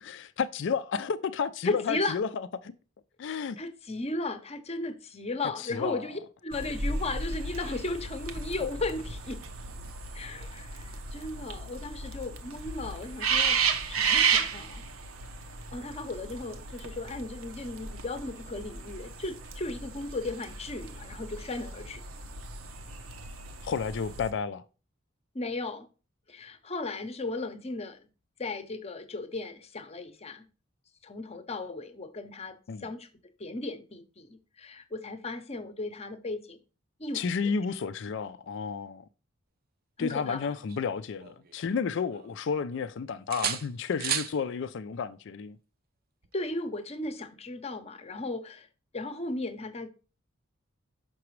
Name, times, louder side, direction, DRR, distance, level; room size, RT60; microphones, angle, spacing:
voice 1, 0.0-2.7 3.2-3.6 5.6-6.0 23.6-24.6 32.7-32.9 37.1-39.1 40.0-45.6, left 6 dB, 60° left, 0.4 m, -32 dB
voice 2, 1.6-2.2 3.6-9.4 10.1-13.6 13.9-14.8 15.7-22.0 25.3-25.9 26.3-28.1 28.4-30.4 31.0-33.1 33.4-36.6 37.0-37.5 40.0-40.5 46.3-48.7 48.9-49.9, left 2 dB, 30° left, 0.8 m, -36 dB
sound 1, 6.5-24.3, right 5 dB, 85° right, 0.9 m, -34 dB
sound 2, 40.2-41.7 42.1-42.9 43.3-44.4 46.2-46.4, right 9 dB, 45° right, 0.6 m, -36 dB
5.9 x 5.9 x 3.1 m
head